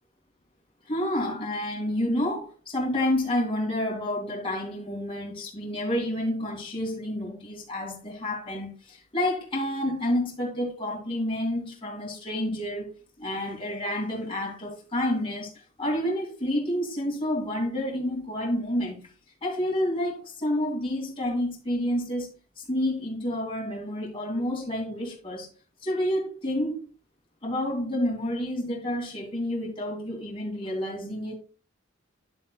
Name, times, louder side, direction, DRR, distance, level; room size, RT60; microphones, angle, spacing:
voice 1, 0.9-12.9 13.2-15.5 15.8-19.1 19.4-25.5 25.8-26.9 27.4-31.4, left 1 dB, 25° left, 2.2 m, -29 dB
9.7 x 7.5 x 2.2 m
head